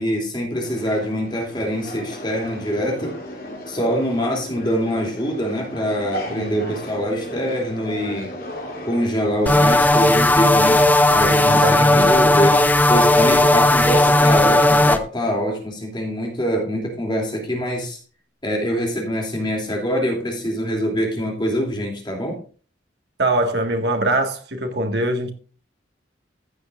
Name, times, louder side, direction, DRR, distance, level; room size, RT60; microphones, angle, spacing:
voice 1, 0.0-3.2 3.7-8.3 8.9-10.8 11.1-18.0 18.4-22.4, equal, 25° left, 2.9 m, -24 dB
sound 1, 0.6-9.5, left 1 dB, 50° left, 2.9 m, -35 dB
voice 2, 6.3-6.7 11.4-12.1 23.2-25.3, right 2 dB, 60° right, 1.9 m, -23 dB
sound 2, 9.5-15.0, left 1 dB, 10° left, 0.5 m, -15 dB
15.0 x 8.2 x 2.6 m
head